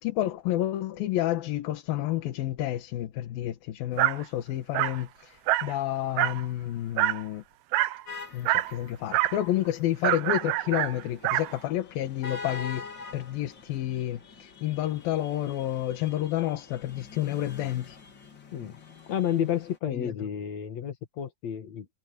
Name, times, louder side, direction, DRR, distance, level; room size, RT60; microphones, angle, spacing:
voice 1, 0.0-7.4 8.3-12.9 13.1-18.0 19.9-20.1, left 13 dB, 70° left, 3.0 m, -30 dB
Dog, 4.0-4.2 4.7-5.0 5.5-5.7 6.2-6.5 7.0-7.2 7.7-8.0 8.5-8.7 9.1-9.4 10.0-11.5, right 15 dB, 80° right, 2.7 m, -26 dB
sound 1, 8.1-19.8, left 4 dB, 30° left, 2.9 m, -45 dB
voice 2, 19.1-21.9, left 9 dB, 50° left, 2.6 m, -31 dB
omnidirectional pair, 4.4 m